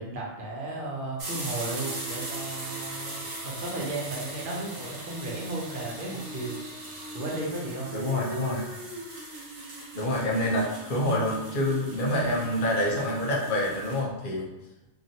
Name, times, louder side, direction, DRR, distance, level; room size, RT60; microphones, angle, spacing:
voice 1, 0.0-6.6 7.1-8.6, right 2 dB, 50° right, -3 dB, 0.8 m, -35 dB
sound 1, 1.2-14.0, right 2 dB, 70° right, 1.4 m, -39 dB
voice 2, 7.9-8.6 9.9-14.5, left 1 dB, 50° left, -3 dB, 0.7 m, -27 dB
2.9 x 2.5 x 2.7 m, 1.0 s
omnidirectional pair, 1.4 m